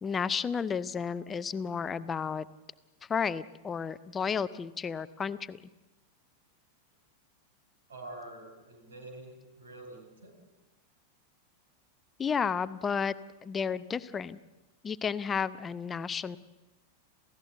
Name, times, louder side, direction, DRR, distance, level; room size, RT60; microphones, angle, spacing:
voice 1, 0.0-2.5 3.1-5.6 12.2-13.1 13.4-14.4 14.8-16.4, left 6 dB, 20° left, 15 dB, 0.6 m, -32 dB
voice 2, 7.9-10.3, right 2 dB, 65° right, 5 dB, 5.3 m, -46 dB
28.0 x 16.0 x 8.0 m, 1.1 s
figure-of-eight pair, 90°, 0 cm